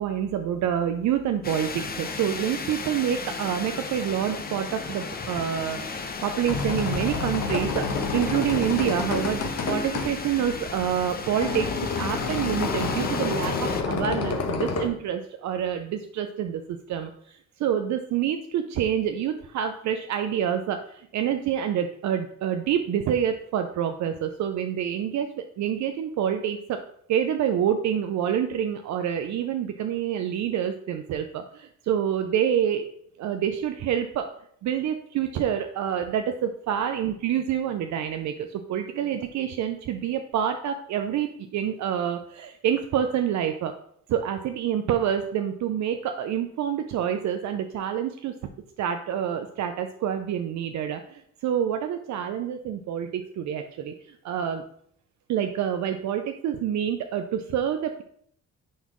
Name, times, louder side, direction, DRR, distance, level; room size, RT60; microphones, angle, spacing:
voice 1, 0.0-7.9 8.1-11.7 11.9-26.8 27.1-32.9 33.2-34.3 34.6-43.7 44.1-48.3 48.8-54.6 55.3-58.0, right 9 dB, 65° right, 7 dB, 0.6 m, -27 dB
sound 1, 1.4-13.8, left 4 dB, 30° left, 0.8 m, -35 dB
sound 2, 6.2-14.9, left 4 dB, 55° left, 1.1 m, -29 dB
9.2 x 4.0 x 3.0 m, 0.66 s
cardioid pair, 90°, 30 cm